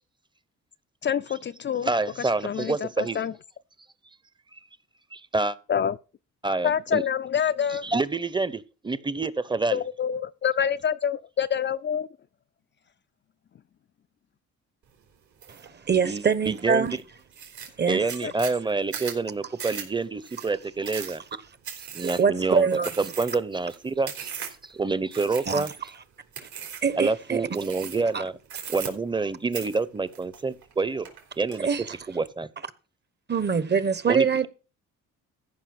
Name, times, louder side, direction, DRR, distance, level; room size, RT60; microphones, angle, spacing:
voice 1, 1.0-1.9 2.4-3.3 5.7-6.0 6.6-7.9 9.7-12.1 18.2-18.3, left 8 dB, 40° left, 0.5 m, -26 dB
voice 2, 1.8-3.2 5.1-5.6 6.4-7.0 7.8-9.8 16.0-17.0 17.9-21.2 21.9-22.7 23.0-24.3 24.6-25.7 27.0-28.4 28.7-31.1 31.4-31.7 32.1-32.5 34.1-34.5, right 3 dB, 15° right, 0.9 m, -27 dB
sound 1, 15.4-15.7 16.1-16.6 17.0-17.1 17.3-24.7 25.1-26.0 26.3-26.9 27.5-28.2 28.5-29.3 29.5-30.7 31.0-31.6, right 8 dB, 70° right, 3.9 m, -38 dB
voice 3, 15.5-17.0 17.8-18.0 22.2-22.9 25.5-25.6 26.4-26.5 26.8-27.4 28.1-28.2 31.6-31.9 33.3-34.5, right 6 dB, 35° right, 1.1 m, -24 dB
14.5 x 5.6 x 6.0 m
cardioid pair, 90°, 30 cm